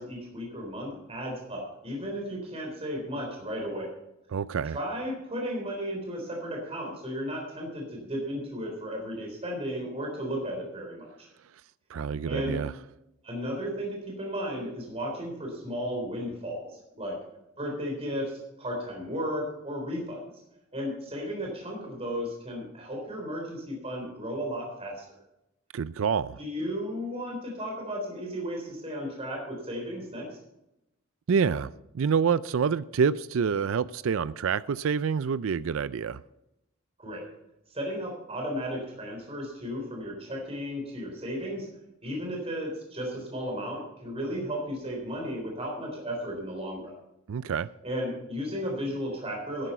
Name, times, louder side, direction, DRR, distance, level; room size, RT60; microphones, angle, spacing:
voice 1, 0.0-3.9 4.7-11.3 12.3-12.6 13.2-17.2 17.6-20.2 20.7-25.0 26.4-30.4 37.0-37.3 37.7-41.7 42.0-46.9 47.8-49.7, equal, 30° right, 3.6 m, -34 dB
voice 2, 4.3-4.8 11.9-12.7 25.7-26.4 31.3-31.7 31.9-36.2 47.3-47.7, right 6 dB, 70° right, 0.4 m, -27 dB
12.0 x 10.0 x 5.6 m
head